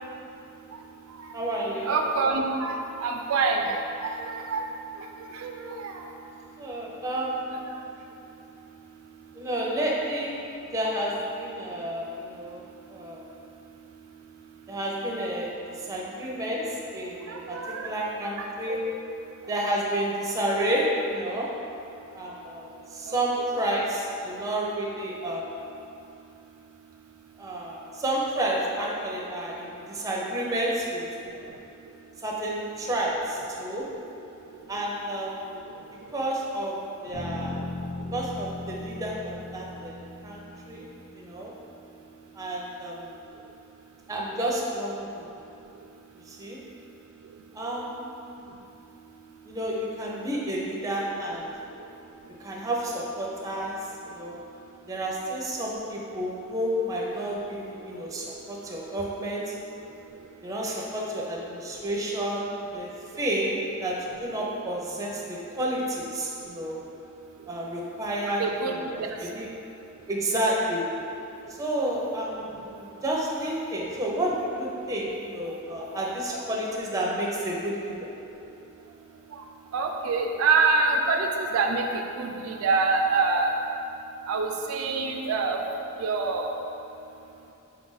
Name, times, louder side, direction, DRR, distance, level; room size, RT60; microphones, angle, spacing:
voice 1, 1.3-2.0 6.6-7.6 9.3-10.4 10.7-12.6 12.9-13.2 14.7-15.5 15.7-18.8 19.5-21.5 22.1-25.5 27.4-31.5 32.2-33.9 34.7-35.8 36.1-36.8 37.0-37.6 38.1-40.0 40.2-40.9 41.1-41.5 42.3-43.2 44.1-45.3 46.3-46.6 47.5-48.6 49.4-51.5 52.4-53.8 54.0-54.4 54.9-59.6 60.4-62.9 63.2-63.5 63.8-66.8 67.5-68.9 69.2-69.5 70.1-70.9 71.5-78.1, right 1 dB, 15° right, -3 dB, 0.5 m, -30 dB
voice 2, 1.8-4.6 5.3-6.0 17.3-17.9 18.4-18.8 23.1-23.2 68.4-69.0 79.7-81.8 82.2-83.5 84.3-85.6 86.0-86.5, right 4 dB, 80° right, 3 dB, 0.3 m, -26 dB
sound 1, 37.1-41.2, left 2 dB, 55° left, 0.8 m, -38 dB
4.2 x 2.5 x 3.9 m, 2.8 s
head